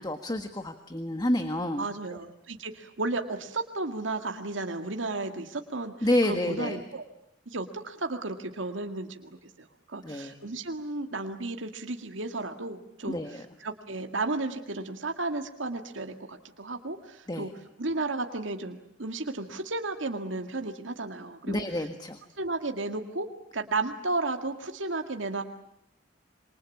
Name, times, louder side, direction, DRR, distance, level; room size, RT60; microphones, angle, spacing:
voice 1, 0.0-1.9 6.0-6.8 10.0-10.4 13.1-13.4 17.3-17.5 21.5-22.2, left 1 dB, 20° left, 7 dB, 1.6 m, -29 dB
voice 2, 1.8-7.0 7.5-17.5 17.8-21.6 22.4-25.4, right 2 dB, 90° right, 5 dB, 2.0 m, -33 dB
27.5 x 24.5 x 8.5 m, 0.79 s
head